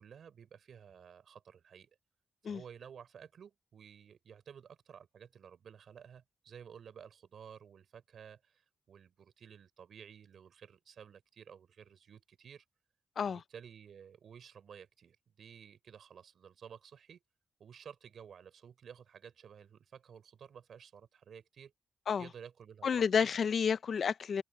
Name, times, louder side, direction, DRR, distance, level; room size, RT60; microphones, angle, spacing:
voice 1, 0.0-1.9 2.4-12.6 13.2-17.2 17.6-21.7 22.2-23.3, right 7 dB, 70° right, 5.1 m, -53 dB
voice 2, 22.8-24.4, left 6 dB, 60° left, 0.4 m, -30 dB
cardioid pair, 110°, 0 cm